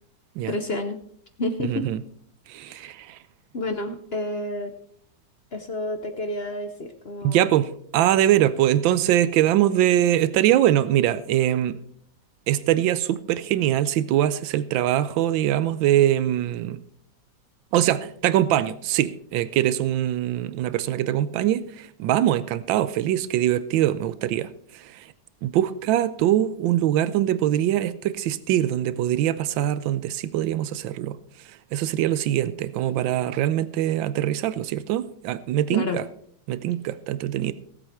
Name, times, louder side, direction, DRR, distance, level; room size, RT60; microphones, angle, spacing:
voice 1, 0.5-1.0 1.4-1.9 2.7-2.9 3.5-4.7 5.5-7.5 35.7-36.0, left 1 dB, 45° left, 8 dB, 0.8 m, -30 dB
voice 2, 1.6-2.0 2.5-3.2 7.2-11.8 12.5-16.8 17.7-25.1 25.4-31.2 31.7-36.0 36.5-37.5, right 12 dB, 90° right, 16 dB, 1.4 m, -23 dB
18.5 x 7.9 x 4.4 m, 0.63 s
omnidirectional pair, 2.0 m